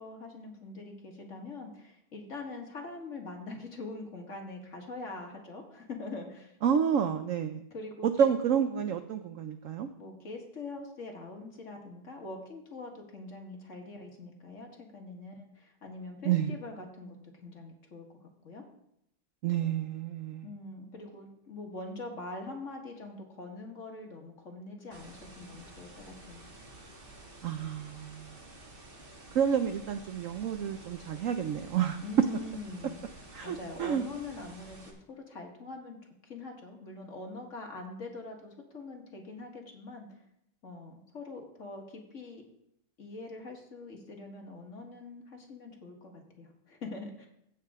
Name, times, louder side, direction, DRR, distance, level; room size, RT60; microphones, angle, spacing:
voice 1, 0.0-6.5 7.7-8.1 10.0-18.6 20.4-26.4 32.0-33.0 33.4-36.0 36.2-40.1 40.6-42.4 43.0-47.3, left 2 dB, 45° left, 2 dB, 1.8 m, -43 dB
voice 2, 6.6-7.6 8.0-9.9 16.2-16.5 19.4-20.5 27.4-28.3 29.3-32.0 33.3-34.0, right 8 dB, 80° right, 8 dB, 0.7 m, -29 dB
sound 1, 24.9-34.9, right 2 dB, 30° right, 1.6 m, -51 dB
16.0 x 6.4 x 3.6 m, 0.76 s
omnidirectional pair, 2.0 m